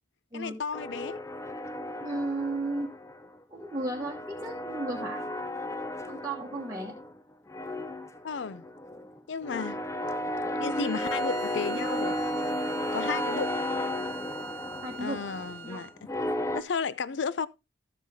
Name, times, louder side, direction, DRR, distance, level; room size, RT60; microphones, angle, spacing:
voice 1, 0.3-1.2 8.2-8.6 9.3-9.8 10.6-12.2 12.9-13.6 15.0-15.9 16.5-17.5, left 5 dB, 75° left, 0.5 m, -33 dB
sound 1, 0.7-3.3 3.5-7.2 7.5-16.6, left 1 dB, 15° left, 0.6 m, -34 dB
voice 2, 2.0-2.9 3.5-5.2 6.1-6.9 14.8-15.2 15.6-15.8, right 2 dB, 15° right, 1.2 m, -34 dB
Bowed string instrument, 10.6-16.0, right 7 dB, 70° right, 0.8 m, -43 dB
12.5 x 7.2 x 2.8 m
head